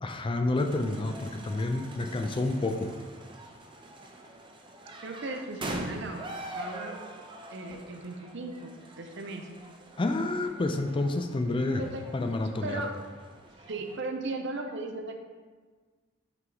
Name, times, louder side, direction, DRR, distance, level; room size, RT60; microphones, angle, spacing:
voice 1, 0.0-2.9 10.0-11.8 12.1-12.8, left 2 dB, 25° left, 6 dB, 0.4 m, -29 dB
sound 1, 0.5-14.0, right 1 dB, 25° right, 0.6 m, -44 dB
voice 2, 5.0-6.3 6.5-7.0 7.5-9.5 11.7-13.0 13.6-15.2, right 2 dB, 65° right, 4 dB, 0.7 m, -37 dB
5.8 x 4.5 x 3.9 m, 1.4 s
head